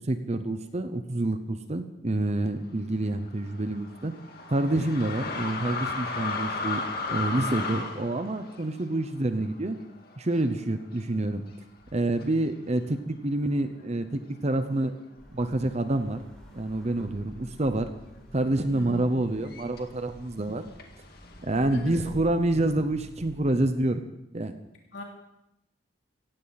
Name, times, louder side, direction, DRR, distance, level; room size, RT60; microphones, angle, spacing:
voice 1, 0.0-4.1 4.5-6.8 7.1-9.8 10.2-11.4 11.9-14.9 15.3-16.2 16.5-17.9 18.3-20.7 21.4-24.0 24.3-24.5, right 1 dB, 35° right, 9 dB, 0.8 m, -27 dB
sound 1, 2.9-10.6 10.9-11.0 11.8-12.3 13.0-13.1 13.4-15.1 15.4-20.0 20.8-21.7, left 3 dB, 55° left, 2.0 m, -36 dB
sound 2, 15.2-23.5, equal, 5° left, 4.8 m, -49 dB
voice 2, 18.7-19.1 21.5-22.1 24.9-25.0, left 1 dB, 70° left, -1 dB, 3.0 m, -38 dB
17.5 x 15.5 x 4.2 m, 0.86 s
head